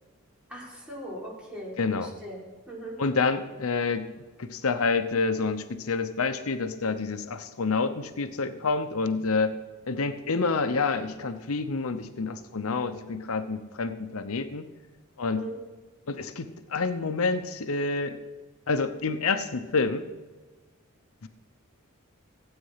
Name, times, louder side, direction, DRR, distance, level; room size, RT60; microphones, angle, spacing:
voice 1, 0.5-2.9 15.3-15.5, right 1 dB, 5° right, -6 dB, 4.1 m, -40 dB
voice 2, 1.8-2.1 3.0-4.1 4.4-9.6 9.9-14.7 15.2-15.4 16.1-18.2 18.7-20.0 21.2-21.3, left 4 dB, 90° left, 10 dB, 0.8 m, -28 dB
16.0 x 8.9 x 5.7 m, 1.2 s
head